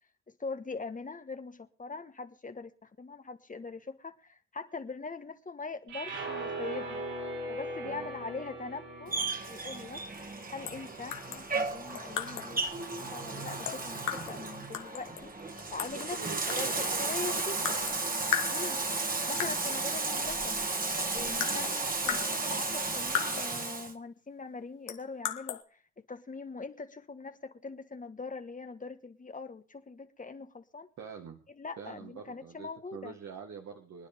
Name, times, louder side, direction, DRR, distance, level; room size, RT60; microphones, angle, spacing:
voice 1, 0.4-7.0 7.5-9.2 9.4-10.0 10.5-12.6 12.9-15.3 15.7-16.2 16.6-17.8 18.5-18.8 19.1-20.6 21.1-30.9 31.5-33.1, left 4 dB, 25° left, 1.4 m, -42 dB
sound 1, 5.9-12.1, right 2 dB, 90° right, 7.2 m, -41 dB
Bathtub (filling or washing), 9.1-23.9, right 3 dB, 30° right, 2.1 m, -34 dB
sound 2, 10.7-10.8 11.1-12.6 13.7-14.4 14.7-16.1 16.5-17.0 17.6-18.0 18.3-19.0 19.4-19.7 20.6-20.7 21.0-23.6 24.9-25.6, left 11 dB, 85° left, 1.7 m, -36 dB
voice 2, 15.9-17.4 17.7-18.0 18.4-18.7 21.5-21.7 31.0-31.4 31.8-34.1, right 6 dB, 60° right, 1.8 m, -45 dB
25.0 x 9.7 x 3.6 m
cardioid pair, 90°, 30 cm